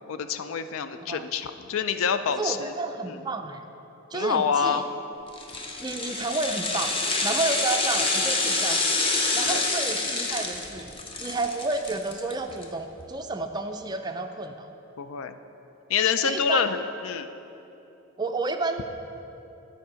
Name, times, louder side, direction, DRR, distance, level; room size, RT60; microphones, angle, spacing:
voice 1, 0.1-2.7 3.1-3.2 4.1-4.8 9.5-9.6 15.0-15.4 15.9-17.3, left 7 dB, 70° left, 10 dB, 0.4 m, -27 dB
voice 2, 2.4-3.6 4.1-4.8 5.8-6.9 7.2-8.8 9.1-10.9 11.2-14.7 16.2-16.7 18.2-18.8, right 3 dB, 20° right, 6 dB, 0.3 m, -30 dB
sound 1, 5.3-12.6 13.0-13.1, left 3 dB, 25° left, 0.7 m, -27 dB
10.5 x 4.6 x 6.2 m, 3.0 s
head